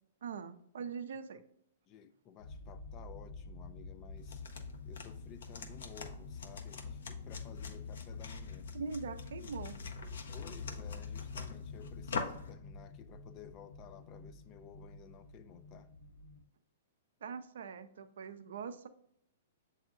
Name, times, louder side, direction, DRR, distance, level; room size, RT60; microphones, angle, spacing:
voice 1, 0.2-1.4 8.7-9.8 17.2-18.9, right 5 dB, 70° right, 0.5 m, -42 dB
voice 2, 1.9-4.4 4.8-8.7 9.4-9.5 10.1-15.9, left 9 dB, 35° left, 0.3 m, -55 dB
sound 1, 2.4-16.4, left 5 dB, 55° left, 1.3 m, -47 dB
sound 2, 4.2-12.5, left 4 dB, 75° left, 0.7 m, -45 dB
7.6 x 2.7 x 2.5 m
hypercardioid pair, 120°, 0 cm